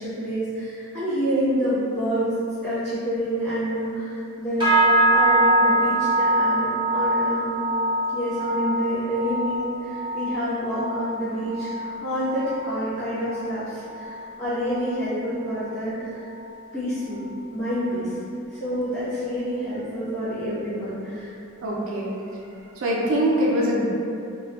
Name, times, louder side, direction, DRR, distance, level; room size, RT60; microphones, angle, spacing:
voice 1, 0.0-2.3 2.6-7.6 8.1-16.2 16.7-17.2 17.5-18.2 18.5-21.3, equal, 5° left, -20 dB, 1.1 m, -28 dB
sound 1, 4.6-14.1 14.4-14.9 15.3-15.6 16.2-16.3, right 1 dB, 20° right, 0.6 m, -24 dB
voice 2, 21.6-22.1 22.8-23.9, equal, 60° right, -4 dB, 0.4 m, -23 dB
2.4 x 2.2 x 2.3 m, 2.7 s
head